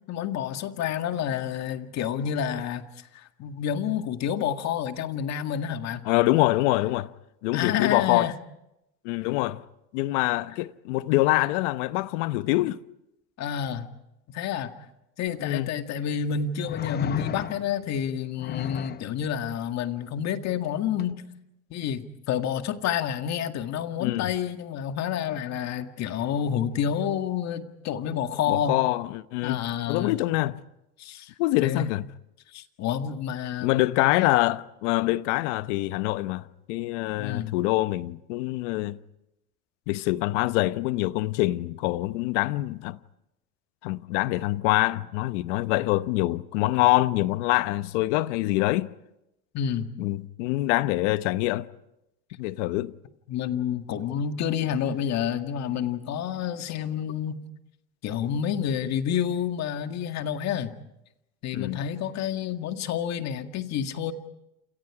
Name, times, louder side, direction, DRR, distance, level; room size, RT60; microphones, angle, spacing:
voice 1, 0.1-2.8 3.1-6.1 7.5-8.4 13.4-13.9 14.3-14.8 15.2-21.2 21.7-28.8 29.4-30.2 31.0-31.3 31.6-31.9 32.5-33.9 37.2-37.6 49.5-49.9 53.3-57.4 58.0-60.7 61.4-64.1, left 8 dB, 50° left, 2.0 m, -29 dB
voice 2, 6.0-7.1 7.4-8.3 9.0-9.6 9.9-12.8 15.4-15.7 24.0-24.3 28.5-30.6 31.4-32.0 33.6-39.0 39.9-43.0 43.8-48.9 50.0-51.7 52.4-52.9 61.5-61.8, left 18 dB, 85° left, 0.9 m, -25 dB
sound 1, 15.3-15.4 16.6-17.8 18.4-19.1 21.0-21.1, left 9 dB, 30° left, 0.8 m, -33 dB
28.5 x 28.0 x 4.9 m
cardioid pair, 130°, 35 cm